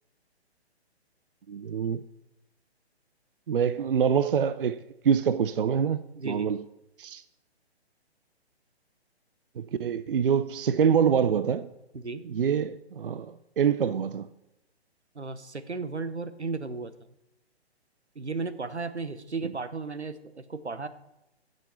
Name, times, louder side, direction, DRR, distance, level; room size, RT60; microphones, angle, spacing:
voice 1, 1.5-2.0 3.5-4.8 5.0-6.6 7.0-7.2 9.6-11.7 12.2-14.3, right 7 dB, 55° right, 0.5 m, -25 dB
voice 2, 6.2-6.5 11.9-12.2 15.1-16.9 18.2-20.9, right 4 dB, 85° right, 1.0 m, -34 dB
15.5 x 6.3 x 4.4 m
figure-of-eight pair, 135°, 33 cm